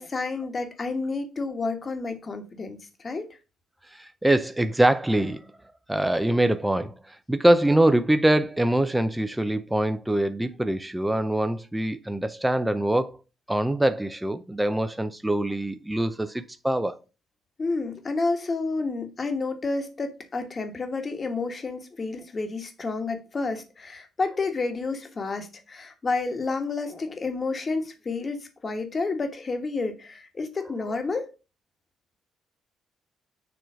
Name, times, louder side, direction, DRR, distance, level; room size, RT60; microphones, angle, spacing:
voice 1, 0.0-3.4 17.6-31.3, left 3 dB, 35° left, 1.4 m, -30 dB
voice 2, 3.9-5.5 5.9-13.2 13.5-17.0, right 1 dB, 10° right, 0.5 m, -24 dB
7.0 x 3.0 x 4.9 m
cardioid pair, 90°, 0 cm